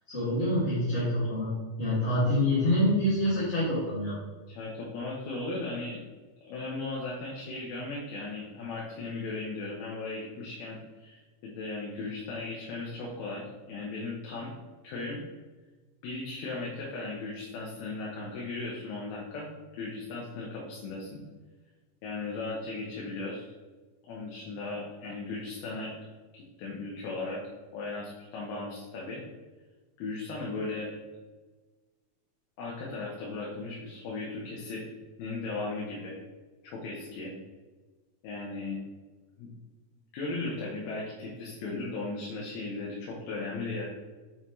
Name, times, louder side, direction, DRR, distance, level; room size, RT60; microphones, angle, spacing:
voice 1, 0.1-1.5 1.8-4.2, left 1 dB, 30° left, -11 dB, 1.3 m, -26 dB
voice 2, 4.5-6.0 6.4-14.5 14.8-15.2 16.0-21.2 22.0-23.5 24.1-25.9 26.3-27.4 27.7-29.2 30.0-30.9 32.6-34.9 35.2-36.2 36.6-37.3 38.2-38.8 39.4-39.5 40.1-43.8, left 3 dB, 90° left, -3 dB, 2.8 m, -37 dB
6.4 x 5.4 x 3.0 m, 1.3 s
omnidirectional pair, 4.3 m